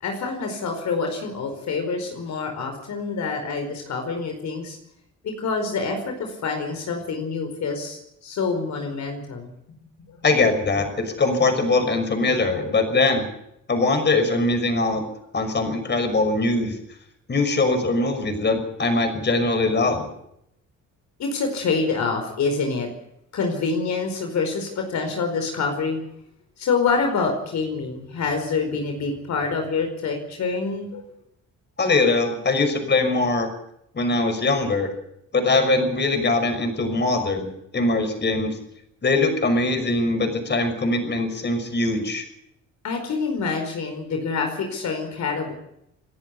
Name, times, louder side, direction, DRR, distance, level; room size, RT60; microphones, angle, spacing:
voice 1, 0.0-4.8 5.2-9.5 10.1-10.2 21.2-22.9 23.3-26.0 26.6-31.0 42.8-45.5, left 4 dB, 65° left, 4 dB, 4.8 m, -26 dB
voice 2, 10.2-13.3 13.7-15.0 15.3-16.8 17.3-20.1 31.8-33.5 33.9-34.9 35.3-38.6 39.0-42.2, left 3 dB, 35° left, 7 dB, 5.9 m, -22 dB
29.5 x 11.0 x 8.3 m, 0.77 s
cardioid pair, 90°, 30 cm